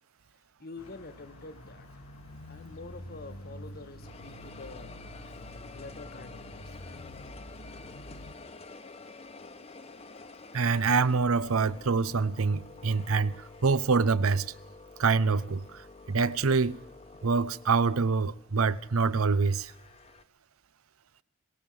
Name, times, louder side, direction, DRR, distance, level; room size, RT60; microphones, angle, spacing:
voice 1, 0.6-1.9 2.5-5.0 5.7-6.8, left 3 dB, 45° left, 1.6 m, -46 dB
sound 1, 0.8-8.3, left 1 dB, 75° left, 1.5 m, -47 dB
sound 2, 0.8-3.6 4.0-20.2, left 3 dB, 30° left, 1.1 m, -50 dB
voice 2, 10.5-14.5 15.0-16.8 17.2-19.7, right 4 dB, 75° right, 0.7 m, -26 dB
21.0 x 18.0 x 7.8 m
head